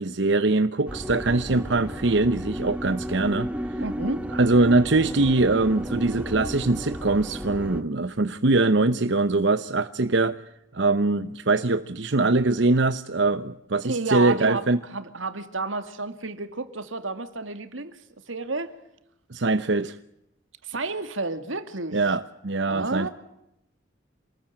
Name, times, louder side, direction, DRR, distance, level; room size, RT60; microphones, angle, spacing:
voice 1, 0.0-3.8 4.3-10.4 10.7-14.8 19.3-20.0 21.9-23.1, right 2 dB, 65° right, 0.9 m, -22 dB
sound 1, 0.9-7.8, equal, 5° right, 1.3 m, -33 dB
voice 2, 3.8-4.2 13.8-14.7 14.9-18.0 18.3-18.7 20.6-22.0 22.7-23.1, right 3 dB, 85° right, 2.4 m, -31 dB
28.0 x 20.0 x 8.9 m
head